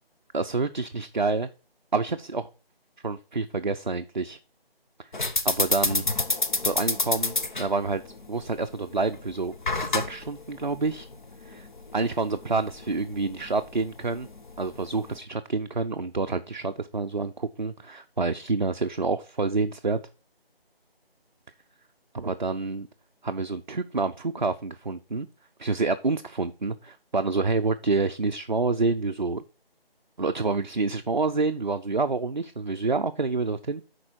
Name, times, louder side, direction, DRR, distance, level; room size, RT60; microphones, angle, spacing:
voice 1, 0.3-1.5 1.9-2.5 3.0-4.4 5.0-5.1 5.4-6.1 6.6-8.0 8.3-9.5 9.8-11.1 11.4-11.7 11.9-14.3 14.6-20.0 22.1-22.9 23.2-25.3 25.6-29.4 30.2-33.8, right 3 dB, 50° right, 7 dB, 0.4 m, -28 dB
sound 1, 5.1-15.2, left 3 dB, 50° left, 0.9 m, -30 dB
11.0 x 4.4 x 4.4 m, 0.34 s
figure-of-eight pair, 170°, 31 cm